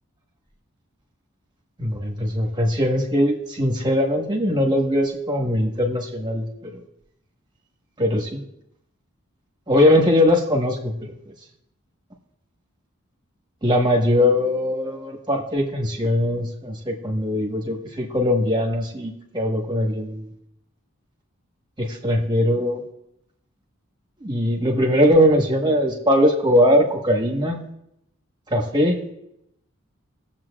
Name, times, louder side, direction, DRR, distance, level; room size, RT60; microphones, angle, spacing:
voice 1, 1.8-6.8 8.0-8.4 9.7-11.3 13.6-20.3 21.8-22.8 24.2-27.6 28.5-29.0, left 1 dB, 20° right, 0 dB, 1.4 m, -21 dB
19.5 x 7.5 x 2.5 m, 0.80 s
head